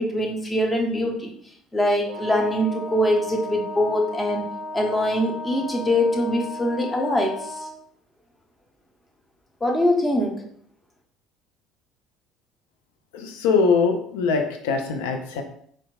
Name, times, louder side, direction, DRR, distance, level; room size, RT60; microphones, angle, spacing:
voice 1, 0.0-1.3 1.7-4.5 4.7-7.6 9.6-10.4, left 1 dB, 15° left, 0 dB, 0.7 m, -23 dB
Wind instrument woodwind instrument, 2.1-7.8, left 1 dB, 45° right, 0.5 m, -35 dB
voice 2, 13.1-15.4, left 5 dB, 65° left, 5 dB, 0.4 m, -22 dB
3.8 x 2.3 x 2.3 m, 0.63 s
figure-of-eight pair, 55°, 0 cm